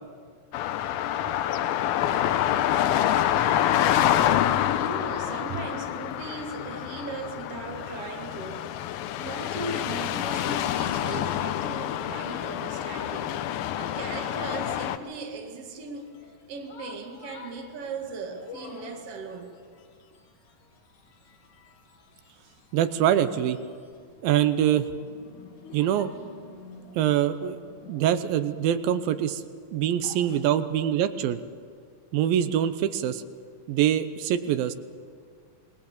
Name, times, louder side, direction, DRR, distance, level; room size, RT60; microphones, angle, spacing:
sound 1, 0.5-15.0, left 11 dB, 90° left, 2.6 m, -27 dB
voice 1, 4.8-8.8 9.2-13.4 13.7-16.2 16.5-19.6 22.4-22.6 30.0-30.4, right 3 dB, 45° right, 2.7 m, -38 dB
sound 2, 15.9-28.0, left 4 dB, 60° left, 3.1 m, -50 dB
voice 2, 22.7-23.6 24.2-24.9 25.7-26.1 27.0-27.6 27.9-29.4 29.7-31.4 32.1-33.2 33.7-34.7, right 10 dB, 85° right, 2.7 m, -24 dB
27.0 x 19.0 x 7.2 m
omnidirectional pair, 4.1 m